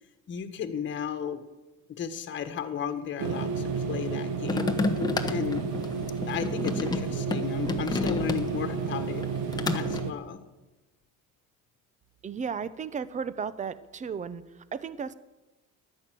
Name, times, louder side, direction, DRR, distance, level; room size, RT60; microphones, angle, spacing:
voice 1, 0.3-1.4 1.9-4.7 5.2-5.6 6.3-9.2 9.7-10.4, left 8 dB, 35° left, 8 dB, 1.5 m, -34 dB
sound 1, 3.2-10.1, right 6 dB, 70° right, 1.6 m, -31 dB
sound 2, 4.4-8.7 9.1-10.0, left 3 dB, 10° left, 1.0 m, -30 dB
voice 2, 12.2-15.1, right 6 dB, 25° right, 15 dB, 0.7 m, -34 dB
14.0 x 11.0 x 7.7 m, 1.1 s
cardioid pair, 145°, 32 cm